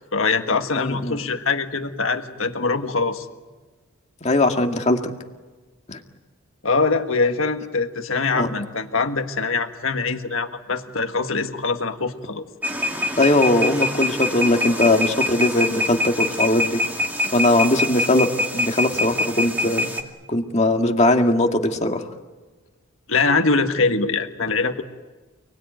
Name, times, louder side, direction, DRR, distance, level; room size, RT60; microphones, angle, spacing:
voice 1, 0.1-3.2 6.6-12.4 23.1-24.8, left 4 dB, 65° left, 6 dB, 1.7 m, -23 dB
voice 2, 0.8-1.2 4.2-5.1 5.9-6.0 8.3-8.5 13.2-16.8 17.3-18.3 18.5-19.9 20.3-22.0, left 1 dB, 30° left, 3 dB, 2.0 m, -20 dB
sound 1, 12.6-20.0, left 1 dB, 10° right, 2.4 m, -25 dB
29.5 x 20.0 x 9.3 m, 1.3 s
head